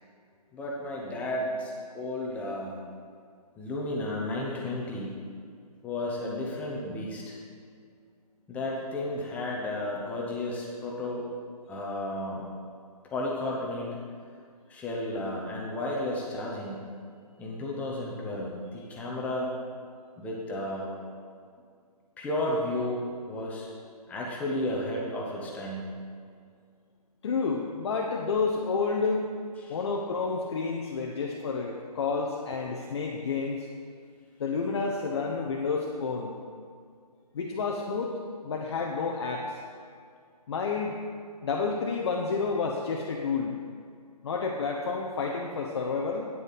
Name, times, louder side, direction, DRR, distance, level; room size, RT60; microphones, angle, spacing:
voice 1, 0.5-2.8 3.6-5.1 5.8-7.4 8.5-11.3 11.7-12.4 13.1-14.0 14.7-16.8 17.4-19.5 20.2-20.9 22.2-23.7 24.1-25.9 29.6-29.7, left 1 dB, 5° left, -3 dB, 0.8 m, -33 dB
voice 2, 27.2-29.3 29.7-33.7 34.4-36.4 37.3-38.2 38.4-39.6 40.5-41.0 41.4-43.6 44.2-46.3, left 4 dB, 40° left, 0 dB, 0.7 m, -30 dB
9.2 x 8.0 x 4.1 m, 2.1 s
figure-of-eight pair, 145°, 21 cm